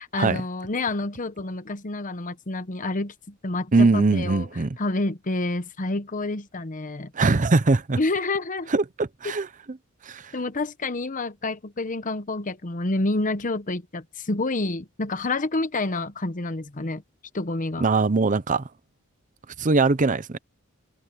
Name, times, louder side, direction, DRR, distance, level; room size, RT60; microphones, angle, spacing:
voice 1, 0.0-4.5 4.8-7.1 8.0-8.7 9.2-9.3 10.3-17.0 17.3-17.8, left 2 dB, 40° left, 1.0 m, -28 dB
voice 2, 3.7-4.8 7.1-8.0 8.7-9.5 10.0-10.3 17.8-18.6 19.6-20.4, right 3 dB, 35° right, 0.7 m, -21 dB
head